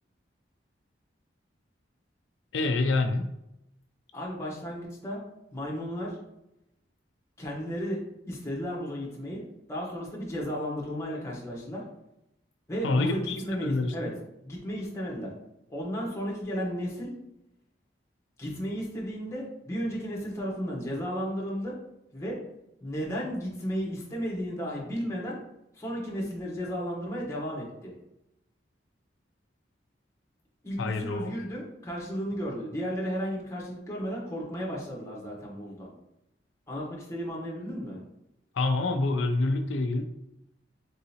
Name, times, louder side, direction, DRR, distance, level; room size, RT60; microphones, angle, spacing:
voice 1, 2.5-3.3 12.8-14.1 30.8-31.3 38.5-40.0, left 2 dB, 85° left, 6 dB, 0.4 m, -27 dB
voice 2, 4.1-5.2 5.5-6.2 7.4-8.0 8.3-9.4 9.7-11.8 12.7-14.1 14.4-15.3 15.7-17.1 18.4-21.7 22.1-22.4 22.8-25.4 25.7-27.9 30.6-35.9 36.7-38.0, equal, 15° left, -4 dB, 1.1 m, -34 dB
3.8 x 3.7 x 2.8 m, 0.85 s
head